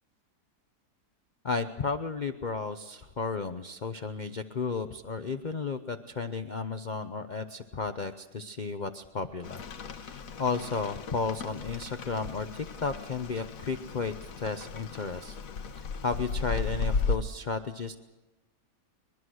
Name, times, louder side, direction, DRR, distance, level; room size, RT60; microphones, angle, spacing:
voice 1, 1.4-15.4 15.8-17.9, left 4 dB, 40° left, 8 dB, 0.7 m, -33 dB
Rain, 9.4-17.2, left 4 dB, 60° left, 1.4 m, -35 dB
23.0 x 22.5 x 6.4 m, 1.1 s
omnidirectional pair, 1.8 m